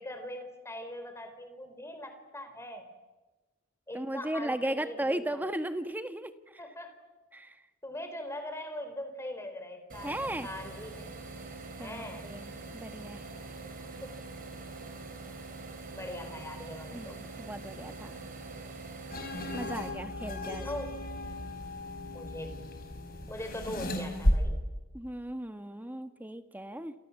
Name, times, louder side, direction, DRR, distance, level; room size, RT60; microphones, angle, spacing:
voice 1, 0.0-2.9 3.9-5.4 6.6-6.9 7.8-11.1 11.8-12.3 13.6-13.7 14.0-14.3 15.9-17.2 20.6-21.0 22.1-22.7 23.3-24.6, left 1 dB, 15° left, 7 dB, 4.2 m, -41 dB
voice 2, 3.9-6.3 7.3-7.6 10.0-10.5 11.8-13.3 16.9-18.2 19.5-20.7 24.9-26.9, right 1 dB, 10° right, 9 dB, 1.4 m, -36 dB
sound 1, 9.9-19.9, right 3 dB, 45° right, 4.2 m, -44 dB
sound 2, 19.1-24.3, left 1 dB, 45° left, 5.8 m, -34 dB
28.5 x 27.5 x 7.3 m, 1.2 s
head